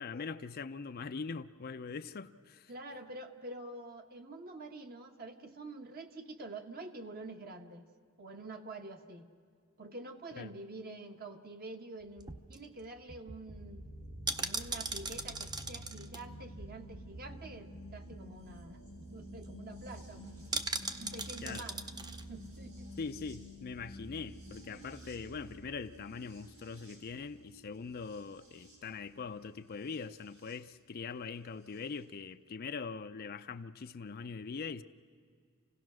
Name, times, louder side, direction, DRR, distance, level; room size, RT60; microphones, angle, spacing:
voice 1, 0.0-2.7 10.3-10.5 21.4-21.7 23.0-34.8, left 5 dB, 45° left, 0.5 m, -42 dB
voice 2, 2.7-7.9 8.2-9.3 9.8-13.8 14.4-20.5 20.8-22.9, right 2 dB, 45° right, 1.2 m, -47 dB
sound 1, 12.0-17.4 17.7-17.8 18.1-18.4 18.7-18.8 19.1-19.5 20.5-22.2 22.6-22.7, right 3 dB, 20° right, 0.6 m, -40 dB
sound 2, 13.5-30.6 31.7-31.8, equal, 75° right, 7.3 m, -50 dB
28.0 x 17.0 x 6.2 m
head